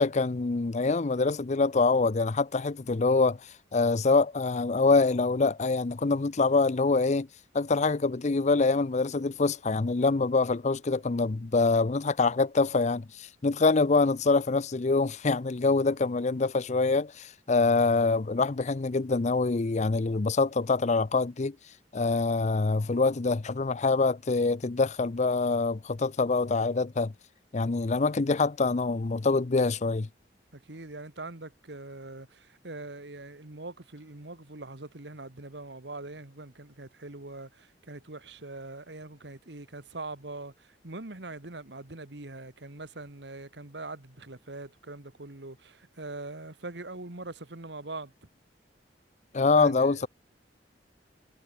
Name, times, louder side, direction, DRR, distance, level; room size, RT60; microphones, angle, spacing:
voice 1, 0.0-7.3 7.5-21.6 21.9-27.1 27.5-30.1 49.3-50.1, left 3 dB, 40° left, 0.6 m, -25 dB
voice 2, 30.5-48.1 49.5-50.1, right 2 dB, 70° right, 1.9 m, -42 dB
head